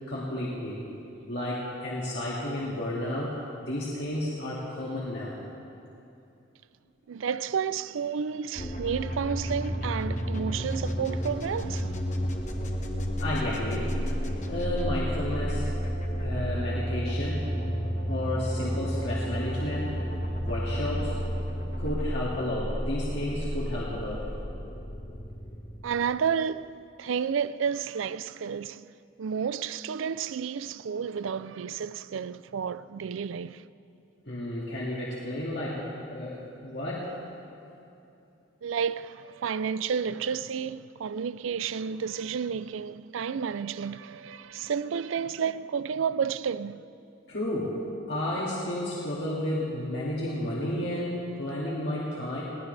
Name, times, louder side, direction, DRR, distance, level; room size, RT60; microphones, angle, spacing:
voice 1, 0.1-0.9 1.3-5.4 13.2-13.9 14.5-15.7 16.2-17.4 18.1-19.9 20.4-21.1 21.8-24.3 34.3-37.1 47.3-47.8 48.1-52.4, left 1 dB, 60° left, 2.1 m, -32 dB
voice 2, 7.1-12.0 25.8-28.9 29.2-33.7 38.6-46.8, right 7 dB, 85° right, 0.4 m, -31 dB
sound 1, 8.6-26.3, equal, 35° left, 1.2 m, -31 dB
21.0 x 18.0 x 3.3 m
head